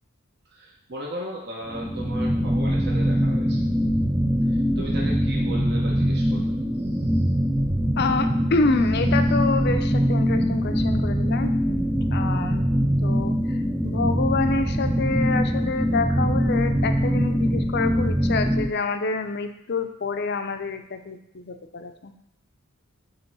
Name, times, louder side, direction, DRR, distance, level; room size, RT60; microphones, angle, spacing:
voice 1, 0.5-3.6 4.5-7.3, right 1 dB, 50° right, -3 dB, 0.9 m, -37 dB
sound 1, 1.7-18.7, equal, 10° right, 0.4 m, -23 dB
voice 2, 8.0-11.5 12.1-12.6 13.0-22.1, left 3 dB, 50° left, 7 dB, 0.5 m, -27 dB
8.1 x 3.1 x 5.5 m, 0.78 s
head